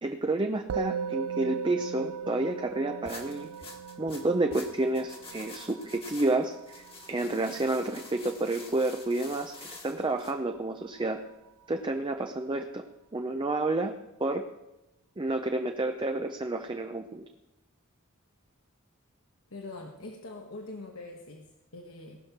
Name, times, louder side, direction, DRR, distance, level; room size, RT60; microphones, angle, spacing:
voice 1, 0.0-3.5 4.0-11.2 11.7-12.8 13.1-13.9 14.2-14.5 15.2-17.2, right 2 dB, 20° right, 5 dB, 0.6 m, -30 dB
Musical instrument, 0.7-10.2, right 6 dB, 85° right, 0.3 m, -39 dB
sound 1, 3.1-10.3, left 3 dB, 25° left, 1.6 m, -47 dB
voice 2, 19.5-22.2, left 2 dB, 75° left, 2 dB, 1.2 m, -43 dB
18.5 x 6.3 x 5.9 m, 0.96 s
head